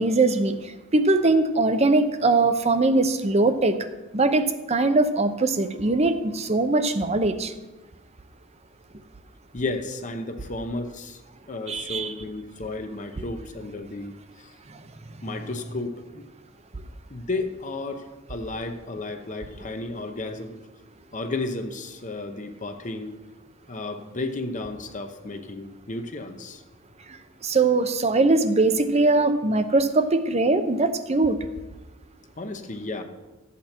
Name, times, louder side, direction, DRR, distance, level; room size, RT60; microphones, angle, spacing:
voice 1, 0.0-3.8 4.1-7.5 11.7-12.1 27.1-27.2 27.4-31.4, right 2 dB, 35° right, 10 dB, 0.7 m, -21 dB
voice 2, 9.5-11.2 11.5-14.5 15.2-16.3 17.1-20.6 21.1-23.1 23.7-26.6 32.4-33.0, left 2 dB, 40° left, 6 dB, 0.9 m, -33 dB
13.0 x 8.4 x 4.4 m, 1.1 s
head